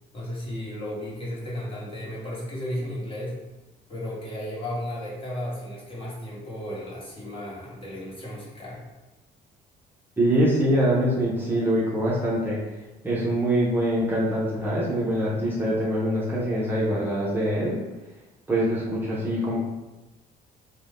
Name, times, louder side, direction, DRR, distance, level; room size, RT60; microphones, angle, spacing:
voice 1, 0.1-3.4 3.9-8.8, left 1 dB, 30° left, -6 dB, 1.1 m, -34 dB
voice 2, 10.2-12.6 13.0-17.8 18.5-19.6, right 1 dB, 10° right, -7 dB, 0.7 m, -24 dB
2.6 x 2.2 x 3.5 m, 1.1 s
cardioid pair, 110°, 17 cm